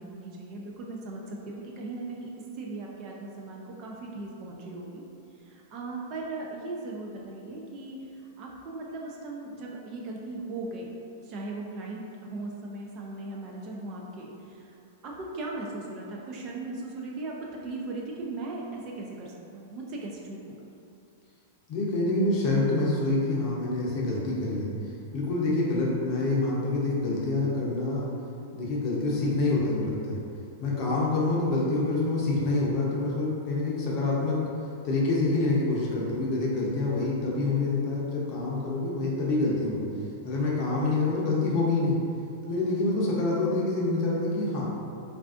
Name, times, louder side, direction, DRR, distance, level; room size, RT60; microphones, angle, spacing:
voice 1, 0.0-2.3 2.6-5.0 5.5-8.0 8.4-10.9 11.2-14.8 15.0-20.4, right 2 dB, 35° right, -2 dB, 0.3 m, -38 dB
voice 2, 21.7-24.7 25.1-28.1 28.5-30.2 30.6-34.4 34.8-39.9 40.2-42.0 42.5-44.6, left 2 dB, 35° left, -5 dB, 0.6 m, -26 dB
3.3 x 2.4 x 2.4 m, 2.5 s
supercardioid pair, 160°, 0 cm